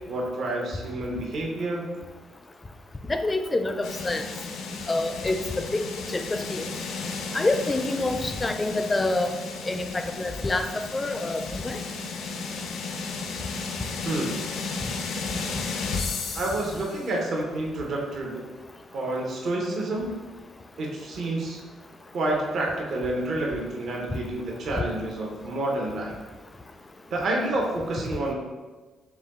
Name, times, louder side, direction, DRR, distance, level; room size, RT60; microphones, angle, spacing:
voice 1, 0.1-1.9 14.0-14.3 16.3-18.4 18.9-20.1 20.8-21.6 22.1-26.1 27.1-28.3, right 2 dB, 60° right, -1 dB, 0.8 m, -29 dB
voice 2, 3.1-4.2 4.9-5.4 5.7-5.8 6.1-6.2 6.5-6.6 7.3-9.3 9.7-10.7 10.9-11.8, left 2 dB, 20° left, 7 dB, 0.4 m, -26 dB
sound 1, 3.8-17.1, left 4 dB, 85° left, 0.5 m, -34 dB
5.7 x 2.3 x 3.6 m, 1.3 s
cardioid pair, 90°, 0 cm